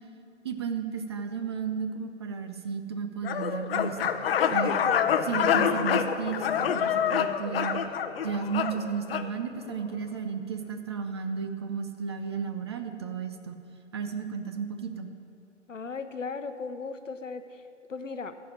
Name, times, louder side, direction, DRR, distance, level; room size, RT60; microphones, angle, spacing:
voice 1, 0.4-4.1 4.5-4.8 5.2-7.8 8.2-13.6 13.9-15.1, right 6 dB, 25° right, 7 dB, 0.4 m, -33 dB
sound 1, 3.2-9.3, left 8 dB, 50° left, 0.7 m, -27 dB
voice 2, 15.7-18.3, left 4 dB, 90° left, 10 dB, 0.9 m, -37 dB
13.0 x 5.2 x 8.4 m, 2.8 s
figure-of-eight pair, 125°, 37 cm